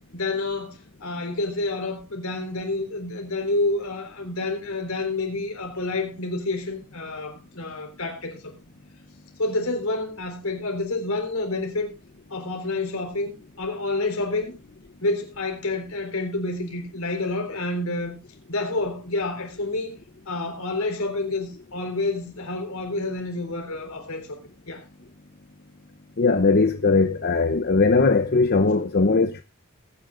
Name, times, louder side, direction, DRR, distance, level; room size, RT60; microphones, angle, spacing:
voice 1, 0.1-8.5 9.4-11.9 12.3-14.6 15.0-18.2 18.5-24.4 24.7-24.8, left 2 dB, 80° left, 4.0 m, -29 dB
voice 2, 26.2-29.4, left 3 dB, 50° left, 0.7 m, -19 dB
20.0 x 9.7 x 2.5 m
head